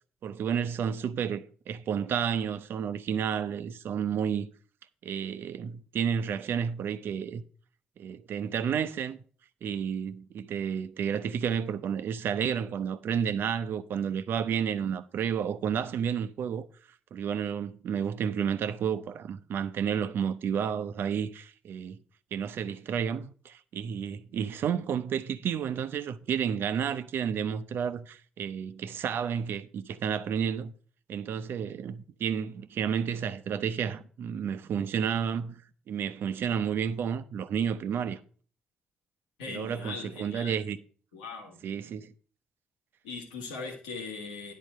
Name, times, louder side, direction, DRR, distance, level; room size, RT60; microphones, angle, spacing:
voice 1, 0.2-4.5 5.0-7.4 8.0-9.2 9.6-16.7 17.1-22.0 22.3-30.7 31.1-38.2 39.5-40.8 41.6-42.1, right 7 dB, 65° right, 0.7 m, -31 dB
voice 2, 39.4-40.6 41.1-41.6 43.0-44.5, left 4 dB, 90° left, 1.8 m, -40 dB
10.5 x 4.1 x 6.5 m
hypercardioid pair, 45°, 4 cm